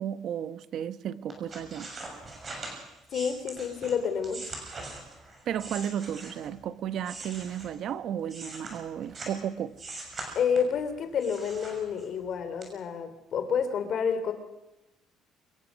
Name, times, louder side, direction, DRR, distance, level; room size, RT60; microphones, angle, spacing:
voice 1, 0.0-1.9 5.5-9.8, right 9 dB, 45° right, 1.0 m, -33 dB
sound 1, 1.3-6.6 7.0-9.4 9.8-10.8 11.2-12.2 12.6-12.7, right 2 dB, 25° right, 6.8 m, -42 dB
voice 2, 3.1-4.4 10.4-14.3, left 6 dB, 40° left, 3.5 m, -29 dB
25.0 x 21.5 x 6.4 m
cardioid pair, 175°, 0 cm